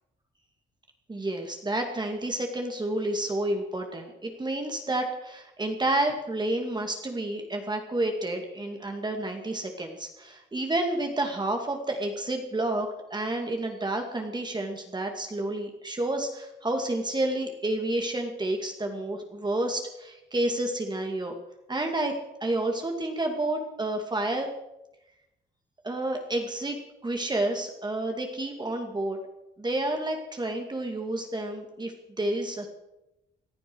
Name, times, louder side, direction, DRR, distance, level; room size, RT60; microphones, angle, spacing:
voice 1, 1.1-21.4 21.7-22.1 22.4-24.5 25.8-26.8 27.0-29.2 29.6-32.7, right 1 dB, 20° right, 3 dB, 2.4 m, -30 dB
18.5 x 11.5 x 6.3 m, 0.92 s
cardioid pair, 90°, 20 cm